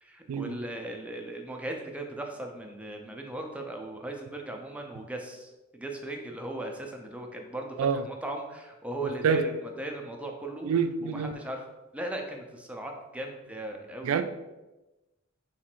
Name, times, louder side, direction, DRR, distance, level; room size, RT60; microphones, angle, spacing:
voice 1, 0.0-10.7 11.0-11.6 11.9-14.2, right 1 dB, 5° right, 2 dB, 0.5 m, -38 dB
voice 2, 10.6-11.3 14.0-14.2, right 6 dB, 70° right, 10 dB, 0.3 m, -26 dB
4.0 x 2.5 x 4.4 m, 1.1 s
head